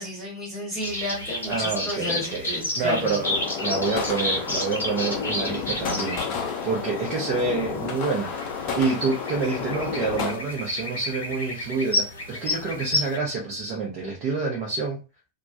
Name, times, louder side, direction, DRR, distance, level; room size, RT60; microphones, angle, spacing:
voice 1, 0.0-3.2, left 1 dB, 5° left, -8 dB, 1.1 m, -32 dB
sound 1, 0.8-13.2, left 1 dB, 70° left, 0.8 m, -31 dB
voice 2, 1.5-2.5 2.7-6.2 6.6-8.3 8.8-15.0, right 4 dB, 35° right, -1 dB, 0.7 m, -27 dB
sound 2, 3.2-10.3, left 6 dB, 40° left, 0.5 m, -31 dB
2.2 x 2.1 x 2.6 m, 0.30 s
figure-of-eight pair, 90°, 0 cm